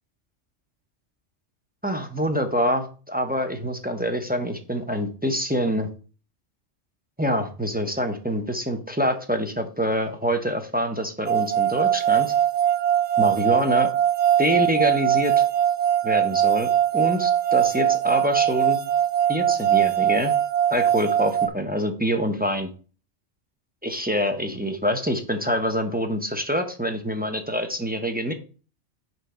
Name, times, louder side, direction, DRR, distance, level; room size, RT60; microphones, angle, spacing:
voice 1, 1.8-5.9 7.2-12.3 13.2-13.9 14.4-15.4 16.0-18.8 19.3-20.3 20.7-22.7 23.8-28.3, equal, 10° right, 4 dB, 0.7 m, -26 dB
sound 1, 11.3-21.5, right 10 dB, 75° right, 0.9 m, -21 dB
5.8 x 4.6 x 4.9 m, 0.38 s
omnidirectional pair, 1.2 m